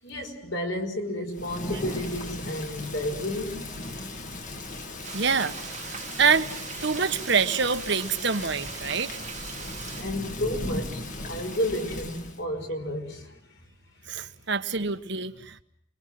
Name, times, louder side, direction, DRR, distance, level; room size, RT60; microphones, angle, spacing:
voice 1, 0.0-3.8 10.0-13.6, left 1 dB, 60° left, 5.2 m, -32 dB
Thunder / Rain, 1.3-12.4, left 2 dB, 35° left, 2.0 m, -37 dB
Frying (food), 5.0-10.0, right 8 dB, 35° right, 1.5 m, -40 dB
voice 2, 5.1-5.6 5.8-6.5 6.8-9.2 14.1-15.6, right 5 dB, 55° right, 1.4 m, -26 dB
29.0 x 23.5 x 7.7 m
head